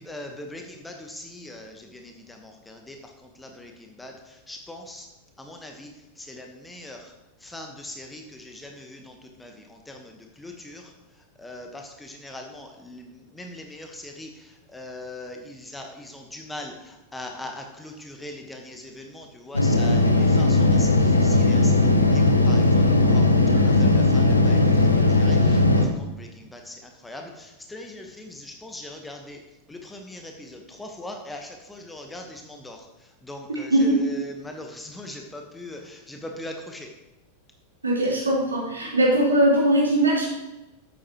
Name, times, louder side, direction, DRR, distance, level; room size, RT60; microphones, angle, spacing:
voice 1, 0.0-5.1 5.4-5.9 6.2-7.1 7.4-10.9 11.4-29.4 29.7-32.9 33.2-36.9, left 1 dB, 10° left, 3 dB, 1.3 m, -41 dB
sound 1, 19.5-25.9, left 2 dB, 85° left, 1.0 m, -18 dB
voice 2, 23.4-23.7 33.5-34.0 37.8-40.3, right 1 dB, 75° right, -5 dB, 4.0 m, -21 dB
12.0 x 8.8 x 3.1 m, 0.98 s
figure-of-eight pair, 90°, 0 cm